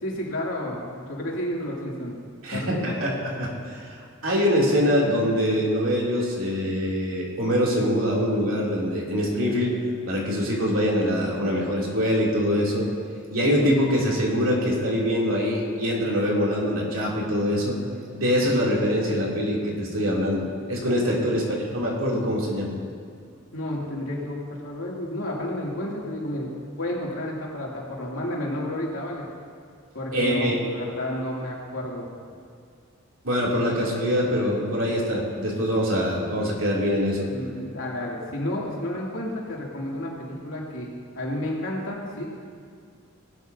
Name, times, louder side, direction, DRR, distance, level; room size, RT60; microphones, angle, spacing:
voice 1, 0.0-2.2 2.5-2.9 21.2-21.4 23.5-29.3 29.9-32.1 37.3-40.9 41.1-42.3, left 1 dB, 85° left, -4 dB, 2.7 m, -31 dB
voice 2, 2.4-4.0 4.2-9.7 10.1-12.9 13.3-17.8 18.1-22.7 30.1-30.5 33.2-37.3, equal, 90° right, -3 dB, 2.9 m, -24 dB
18.5 x 12.0 x 2.8 m, 2.3 s
head